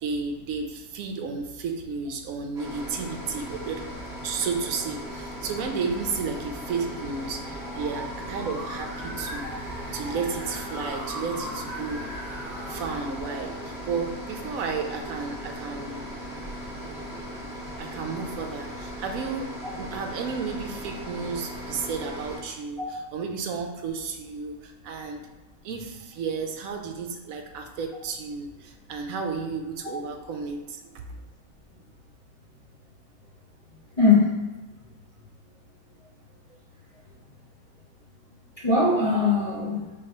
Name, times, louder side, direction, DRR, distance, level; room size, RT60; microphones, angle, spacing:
voice 1, 0.0-3.9 4.2-9.5 9.9-12.1 12.7-16.0 16.7-17.0 17.4-25.2 25.6-31.1, right 5 dB, 75° right, 4 dB, 1.0 m, -33 dB
sound 1, 2.5-22.4, equal, ahead, 1.3 m, -38 dB
sound 2, 7.2-14.4, right 1 dB, 20° right, 0.6 m, -40 dB
voice 2, 34.0-34.4 38.6-39.8, left 3 dB, 40° left, -7 dB, 0.5 m, -21 dB
4.9 x 3.5 x 2.9 m, 1.2 s
omnidirectional pair, 1.5 m